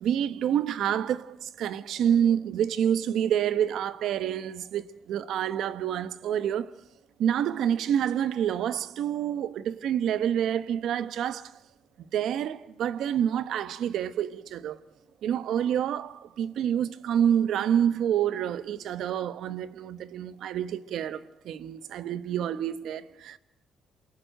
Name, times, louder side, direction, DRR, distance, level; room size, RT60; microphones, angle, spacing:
voice 1, 0.0-6.7 7.2-11.5 12.1-14.8 15.2-23.4, right 9 dB, 75° right, 1.1 m, -28 dB
28.5 x 18.0 x 9.2 m
cardioid pair, 90°, 0 cm